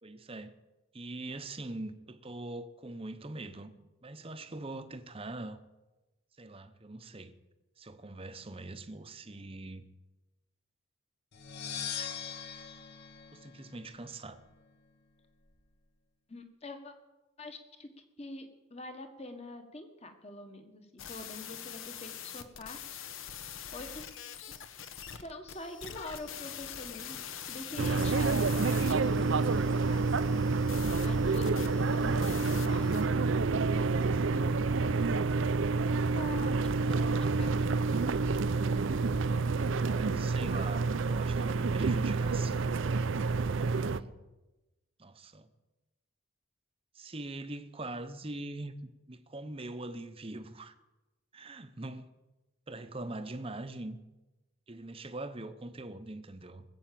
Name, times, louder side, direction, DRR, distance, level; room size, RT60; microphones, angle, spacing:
voice 1, 0.0-0.5 0.9-3.7 4.0-5.6 6.4-7.3 7.8-9.9 11.7-12.1 13.3-14.4 39.7-42.7 43.1-44.1 45.0-45.5 46.9-50.7 51.3-52.1 52.7-54.0 54.7-56.6, right 2 dB, 25° right, 0.8 m, -42 dB
sound 1, 11.3-14.2, left 8 dB, 50° left, 1.2 m, -41 dB
voice 2, 16.3-16.9 17.4-17.9 18.2-23.0 23.7-24.0 24.5-24.6 25.1-30.4 31.0-33.4 34.1-35.4 36.1-37.8, left 2 dB, 30° left, 1.4 m, -45 dB
sound 2, 21.0-33.1, left 8 dB, 70° left, 1.0 m, -44 dB
sound 3, 27.8-44.0, right 4 dB, 60° right, 0.5 m, -28 dB
20.0 x 8.0 x 7.5 m
head